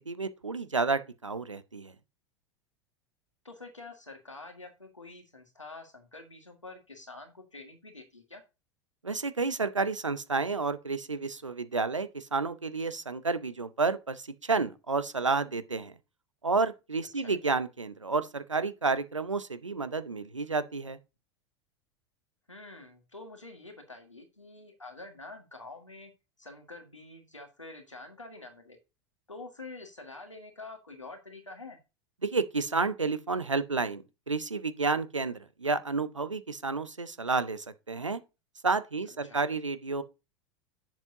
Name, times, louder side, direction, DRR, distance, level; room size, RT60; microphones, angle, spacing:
voice 1, 0.1-1.9 9.0-15.9 16.4-21.0 32.2-38.2 38.6-40.0, right 4 dB, 85° right, 0.7 m, -30 dB
voice 2, 3.4-8.4 17.1-17.4 22.5-26.1 26.4-28.8 29.3-31.8 39.1-39.4, left 3 dB, 90° left, 1.7 m, -47 dB
10.5 x 7.5 x 2.7 m
figure-of-eight pair, 80°, 15 cm